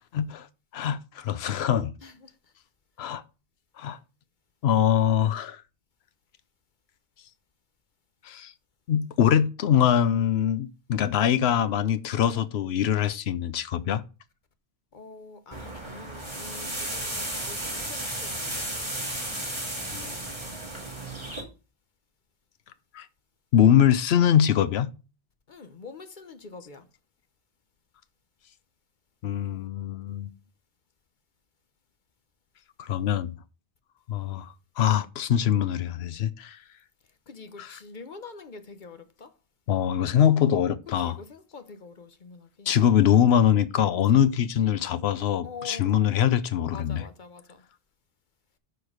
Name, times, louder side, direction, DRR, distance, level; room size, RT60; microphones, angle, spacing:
voice 1, 0.1-0.5 0.7-1.9 3.0-3.2 3.8-4.0 4.6-5.6 8.2-8.5 8.9-14.0 19.9-20.2 22.9-23.1 23.5-24.9 29.2-30.3 32.8-33.3 34.1-34.5 34.8-36.6 37.6-37.8 39.7-41.2 42.7-47.0, left 9 dB, 80° left, 0.9 m, -23 dB
voice 2, 2.0-2.3 14.9-18.8 25.5-26.9 37.3-39.3 41.0-42.7 44.0-44.2 45.4-46.3 46.7-47.6, left 4 dB, 50° left, 1.1 m, -45 dB
sound 1, 15.5-21.4, right 1 dB, 25° right, 2.6 m, -34 dB
12.5 x 4.6 x 4.9 m
omnidirectional pair, 1.1 m